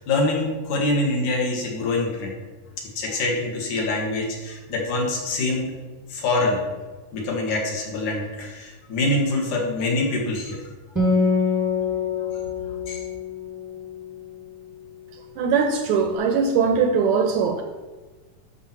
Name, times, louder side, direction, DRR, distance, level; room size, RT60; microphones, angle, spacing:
voice 1, 0.0-2.3 3.0-5.7 6.1-6.6 7.1-10.6 12.9-13.0, left 2 dB, 65° left, -1 dB, 3.2 m, -25 dB
Acoustic guitar, 11.0-14.7, left 4 dB, ahead, 0.9 m, -25 dB
voice 2, 15.4-17.6, right 5 dB, 75° right, 5 dB, 1.9 m, -21 dB
12.5 x 5.9 x 4.5 m, 1.3 s
omnidirectional pair, 3.8 m